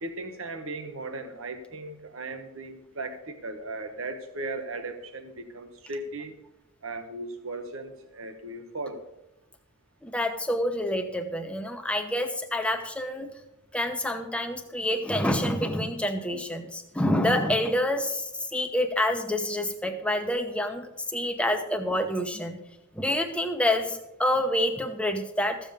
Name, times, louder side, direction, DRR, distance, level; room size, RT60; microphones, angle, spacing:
voice 1, 0.0-6.3 6.8-9.0, right 2 dB, 70° right, 8 dB, 1.1 m, -37 dB
voice 2, 10.0-13.3 13.7-22.6 23.0-25.6, left 1 dB, 5° left, 5 dB, 0.9 m, -27 dB
14.0 x 7.5 x 5.2 m, 0.87 s
head